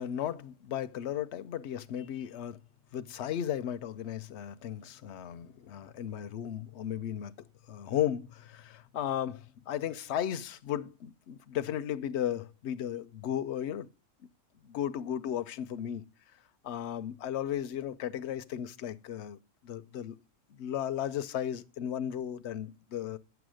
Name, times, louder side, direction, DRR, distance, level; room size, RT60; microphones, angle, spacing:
voice 1, 0.0-2.6 2.9-7.3 7.7-13.9 14.6-16.0 16.6-19.4 19.6-20.1 20.6-23.2, left 10 dB, 60° left, 0.9 m, -35 dB
9.6 x 7.1 x 6.3 m
omnidirectional pair, 1.4 m